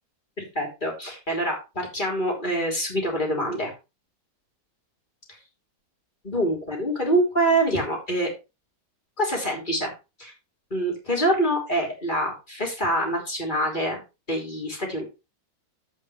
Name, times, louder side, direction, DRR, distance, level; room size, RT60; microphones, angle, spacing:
voice 1, 0.4-3.7 6.2-8.3 9.2-9.9 10.2-10.3 10.7-14.0 14.3-15.0, right 1 dB, 25° left, 0 dB, 3.3 m, -25 dB
15.0 x 5.3 x 3.2 m, 0.27 s
omnidirectional pair, 2.1 m